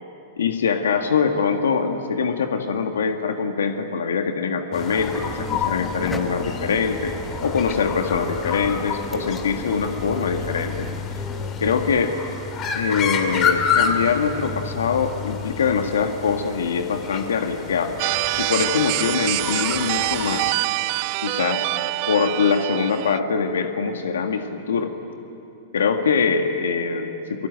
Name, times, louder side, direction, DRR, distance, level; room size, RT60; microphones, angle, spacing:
voice 1, 0.4-10.9 11.6-12.1 12.7-18.0 18.4-20.6 21.2-21.7 22.1-24.9 25.7-27.5, left 5 dB, 90° left, 5 dB, 1.7 m, -23 dB
sound 1, 4.7-20.5, left 6 dB, 30° left, 2.6 m, -29 dB
sound 2, 4.9-12.1, left 3 dB, 10° left, 1.5 m, -36 dB
sound 3, 18.0-23.2, right 19 dB, 50° right, 0.5 m, -25 dB
30.0 x 19.5 x 9.3 m, 2.7 s
hypercardioid pair, 135°, 0 cm